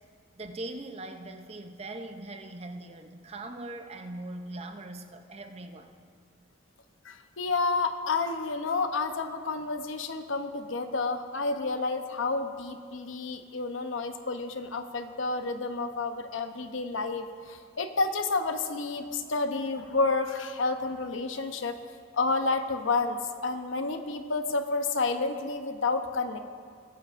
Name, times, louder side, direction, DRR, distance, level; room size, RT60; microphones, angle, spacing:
voice 1, 0.4-6.0, right 2 dB, 30° right, 6 dB, 0.6 m, -41 dB
voice 2, 7.0-21.8 22.1-26.4, left 3 dB, 75° left, 7 dB, 0.7 m, -30 dB
20.0 x 9.0 x 2.5 m, 2.1 s
head